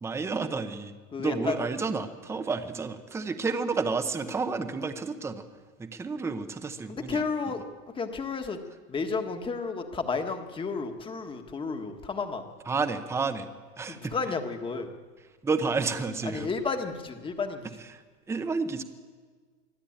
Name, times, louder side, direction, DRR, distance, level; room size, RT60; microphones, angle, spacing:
voice 1, 0.0-0.9 1.2-5.4 5.8-7.2 12.7-13.5 13.8-14.3 15.4-16.5 17.9-18.8, right 4 dB, 5° right, 9 dB, 0.9 m, -30 dB
voice 2, 1.1-1.6 6.9-7.6 7.9-8.6 8.9-12.4 13.9-14.9 16.2-17.7, left 4 dB, 15° left, 6 dB, 1.5 m, -32 dB
23.5 x 14.5 x 8.8 m, 1.5 s
supercardioid pair, 155°, 40 cm